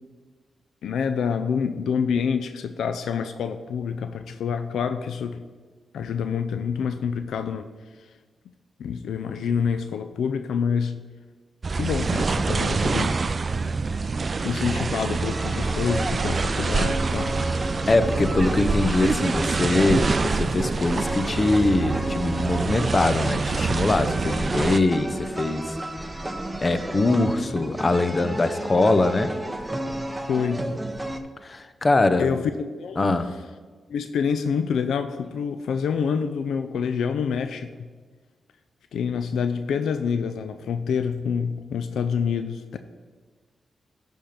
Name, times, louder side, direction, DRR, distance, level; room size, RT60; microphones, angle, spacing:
voice 1, 0.8-5.4 5.9-7.7 8.8-11.0 11.8-13.2 14.4-17.4 30.3-30.7 32.2-33.2 33.9-37.9 38.9-42.8, left 6 dB, 85° left, 9 dB, 0.3 m, -27 dB
sound 1, 11.6-24.8, right 4 dB, 45° right, 0.4 m, -26 dB
sound 2, 15.2-31.2, right 1 dB, 15° right, 0.8 m, -32 dB
voice 2, 17.9-25.8 26.6-29.3 31.4-32.3 33.0-33.3, left 2 dB, 40° left, 10 dB, 0.7 m, -22 dB
10.0 x 3.6 x 5.8 m, 1.4 s
cardioid pair, 55°, 0 cm